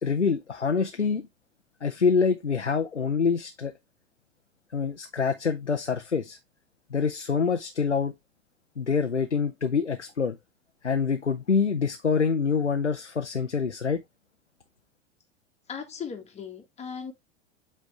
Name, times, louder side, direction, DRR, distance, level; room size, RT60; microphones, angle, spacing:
voice 1, 0.0-1.3 1.8-3.7 4.7-6.4 6.9-8.1 8.8-10.4 10.8-14.0, left 5 dB, 85° left, 0.7 m, -26 dB
voice 2, 15.7-17.1, left 6 dB, 20° left, 1.6 m, -37 dB
8.3 x 3.5 x 3.3 m
figure-of-eight pair, 90°, 35 cm